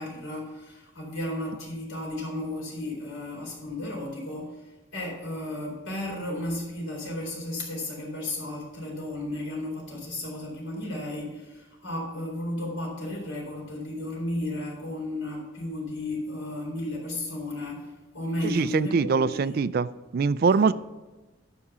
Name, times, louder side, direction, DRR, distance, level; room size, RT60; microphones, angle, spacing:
voice 1, 0.0-4.6 4.9-19.6 20.4-20.7, left 1 dB, 90° left, -2 dB, 4.0 m, -34 dB
voice 2, 18.4-20.7, right 5 dB, 50° right, 16 dB, 0.3 m, -23 dB
12.5 x 4.9 x 7.0 m, 1.2 s
head